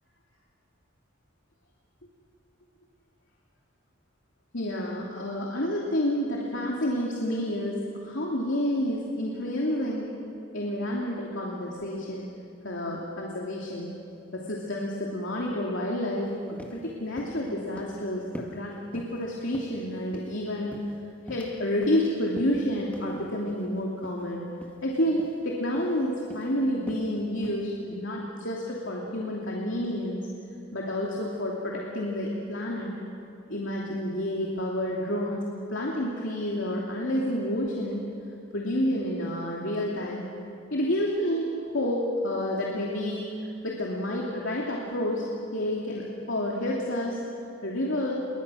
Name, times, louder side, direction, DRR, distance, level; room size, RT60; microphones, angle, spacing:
voice 1, 4.5-10.1 10.5-12.3 12.6-13.9 14.3-20.8 21.3-24.4 24.8-30.3 30.7-32.9 33.5-38.0 38.5-40.3 40.7-43.3 43.6-45.2 45.5-47.2 47.6-48.1, left 1 dB, 70° left, -3 dB, 2.8 m, -29 dB
sound 1, 16.2-16.3 16.6-16.8 17.2-17.4 17.8-18.0 18.3-18.6 18.9-19.2 19.5-20.4 20.7-21.5 21.8-22.0 22.4-22.6 22.9-23.1 23.5-23.7 24.0-24.2 24.5-24.8 25.2-25.4 25.7-26.0 26.3-26.5 26.9-27.1 27.4-27.6, equal, 5° left, 1.8 m, -43 dB
28.5 x 22.5 x 6.4 m, 2.5 s
head